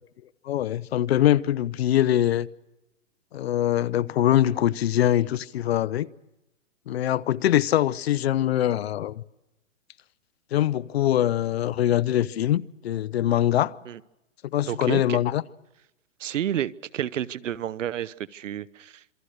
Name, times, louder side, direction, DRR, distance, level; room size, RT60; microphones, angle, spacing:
voice 1, 0.4-2.5 3.3-6.1 6.9-9.2 10.5-13.7 14.4-15.4, left 12 dB, 55° left, 0.8 m, -23 dB
voice 2, 14.7-15.2 16.2-19.0, right 11 dB, 70° right, 1.0 m, -30 dB
26.5 x 25.0 x 6.5 m
hypercardioid pair, 155°, 38 cm